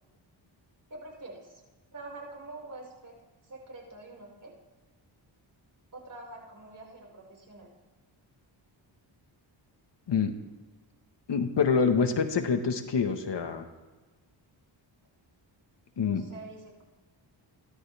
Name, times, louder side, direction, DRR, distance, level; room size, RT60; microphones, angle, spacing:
voice 1, 0.9-1.6 1.9-3.2 3.4-4.6 5.9-7.7 16.0-16.8, right 2 dB, 40° right, -2 dB, 5.6 m, -45 dB
voice 2, 11.3-13.6 16.0-16.2, left 5 dB, 60° left, 6 dB, 1.7 m, -26 dB
28.0 x 12.5 x 3.6 m, 1.3 s
cardioid pair, 75°, 47 cm